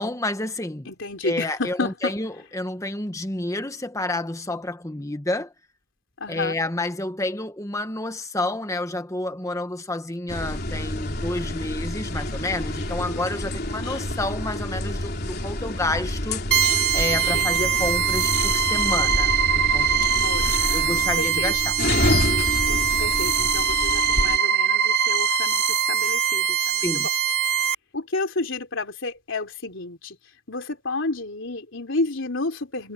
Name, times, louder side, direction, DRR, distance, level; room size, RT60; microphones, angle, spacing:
voice 1, 0.0-0.9 1.2-5.5 6.3-16.5 16.9-20.1 20.7-21.8 26.7-27.1, left 2 dB, 15° left, 1.2 m, -29 dB
voice 2, 0.9-2.1 6.2-6.6 17.2-17.7 20.2-20.8 21.2-21.5 23.0-27.1 27.9-30.2 30.5-32.9, left 3 dB, 65° left, 3.5 m, -30 dB
sound 1, 10.3-24.4, left 1 dB, 45° left, 4.2 m, -28 dB
sound 2, 16.5-27.7, right 8 dB, 50° right, 3.5 m, -22 dB
head